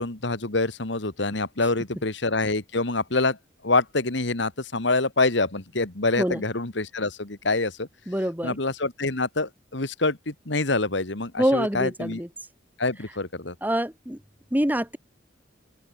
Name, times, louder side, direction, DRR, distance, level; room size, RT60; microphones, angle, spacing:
voice 1, 0.0-3.4 3.6-7.9 8.4-12.2 12.8-13.6, left 3 dB, 70° left, 2.0 m, -26 dB
voice 2, 8.1-8.5 11.4-12.3 13.6-14.2 14.5-15.0, equal, 10° right, 1.9 m, -25 dB
open air
head